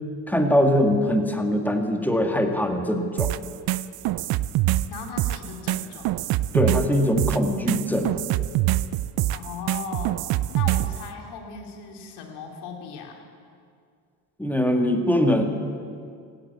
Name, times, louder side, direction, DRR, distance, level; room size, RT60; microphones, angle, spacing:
voice 1, 0.3-3.3 6.5-8.1 14.4-15.4, equal, 5° left, 4 dB, 2.0 m, -22 dB
sound 1, 3.2-11.0, right 15 dB, 60° right, 0.6 m, -24 dB
voice 2, 4.9-6.1 9.3-10.2 10.5-13.2, left 6 dB, 70° left, 2 dB, 2.7 m, -37 dB
16.5 x 9.2 x 8.1 m, 2.3 s
hypercardioid pair, 65°, 42 cm